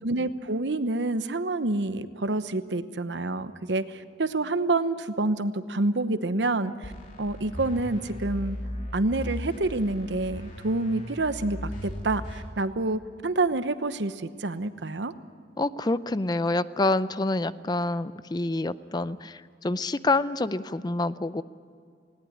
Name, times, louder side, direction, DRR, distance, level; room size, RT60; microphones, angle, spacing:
voice 1, 0.0-6.9 7.2-8.6 8.9-15.1, right 2 dB, 85° right, 12 dB, 1.0 m, -28 dB
sound 1, 6.8-12.4, left 1 dB, 45° left, 3.1 m, -37 dB
voice 2, 15.6-21.4, left 2 dB, 25° left, 15 dB, 0.5 m, -27 dB
20.0 x 17.5 x 10.0 m, 2.2 s
head